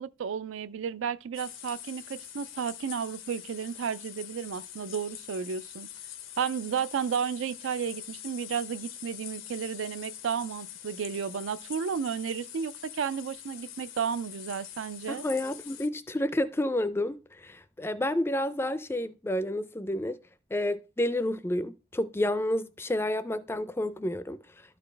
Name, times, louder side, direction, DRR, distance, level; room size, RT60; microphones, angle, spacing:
voice 1, 0.0-5.9 6.4-15.3, right 7 dB, 80° right, 0.4 m, -33 dB
sound 1, 1.3-15.9, left 11 dB, 85° left, 0.7 m, -44 dB
voice 2, 15.1-20.2 20.5-24.4, left 1 dB, 10° left, 0.4 m, -30 dB
12.0 x 4.1 x 3.3 m
head